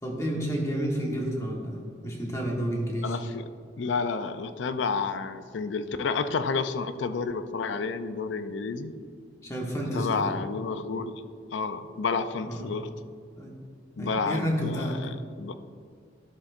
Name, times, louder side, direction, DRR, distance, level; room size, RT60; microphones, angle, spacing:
voice 1, 0.0-3.2 9.4-10.3 12.4-12.7 13.4-13.6 14.0-15.0, equal, 15° left, -1 dB, 1.2 m, -30 dB
voice 2, 3.0-3.4 3.8-8.9 9.7-11.2 11.5-12.9 14.0-15.5, left 4 dB, 75° left, 10 dB, 0.4 m, -30 dB
12.5 x 7.0 x 2.5 m, 2.2 s
head